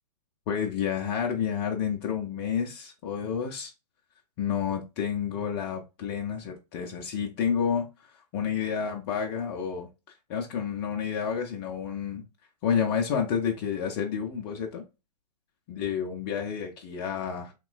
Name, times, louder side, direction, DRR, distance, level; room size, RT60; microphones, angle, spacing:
voice 1, 0.5-3.7 4.4-7.9 8.1-12.2 12.6-14.8 15.7-17.5, left 7 dB, 30° left, 0.5 m, -30 dB
3.0 x 3.0 x 2.2 m
figure-of-eight pair, 110°, 21 cm